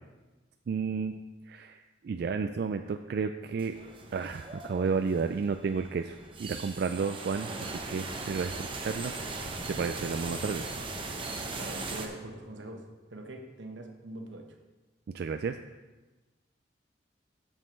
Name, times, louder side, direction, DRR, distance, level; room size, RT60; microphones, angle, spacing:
voice 1, 0.7-1.2 1.5-3.7 4.1-9.1 9.7-10.6 15.1-15.6, right 5 dB, 55° right, 7 dB, 0.3 m, -32 dB
sound 1, 3.6-12.1, right 3 dB, 30° right, 0.8 m, -39 dB
voice 2, 11.6-14.6, right 1 dB, 90° right, 4 dB, 1.1 m, -43 dB
7.5 x 6.4 x 5.2 m, 1.2 s
head